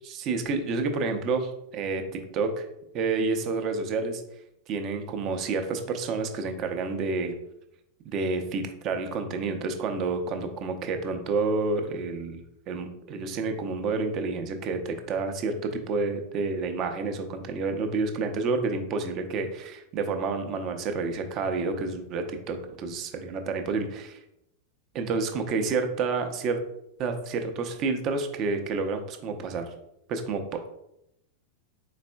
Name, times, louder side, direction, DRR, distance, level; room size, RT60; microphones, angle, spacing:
voice 1, 0.1-2.7 2.9-4.2 4.7-7.3 8.0-24.2 24.9-26.6 27.0-29.6 30.1-30.7, right 4 dB, 35° right, 6 dB, 0.5 m, -29 dB
4.3 x 4.0 x 2.2 m, 0.83 s
figure-of-eight pair, 90°, 0 cm